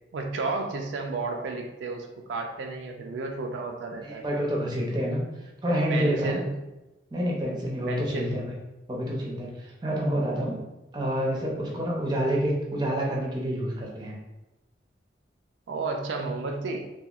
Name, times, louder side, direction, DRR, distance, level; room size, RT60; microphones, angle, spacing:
voice 1, 0.1-4.2 5.9-6.6 7.9-8.4 15.7-16.8, right 3 dB, 85° right, 3 dB, 0.3 m, -32 dB
voice 2, 4.0-5.2 5.6-6.4 7.1-8.5 8.9-10.6 10.9-14.1, equal, 25° right, -2 dB, 0.5 m, -28 dB
2.9 x 2.3 x 2.3 m, 0.99 s
head